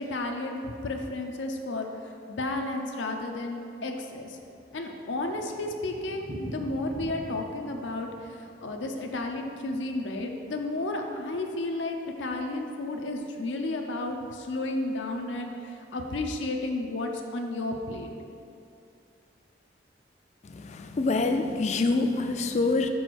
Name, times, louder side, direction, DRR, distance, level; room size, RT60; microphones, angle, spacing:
voice 1, 0.0-4.4 4.7-18.1, left 2 dB, 85° left, 3 dB, 0.6 m, -32 dB
Thunder, 4.6-10.7 10.9-11.0 11.3-11.4 11.6-11.7 12.3-12.6, equal, 25° right, 0.6 m, -45 dB
voice 2, 20.4-22.9, left 3 dB, 35° left, 6 dB, 0.3 m, -26 dB
5.4 x 4.7 x 6.0 m, 2.5 s
head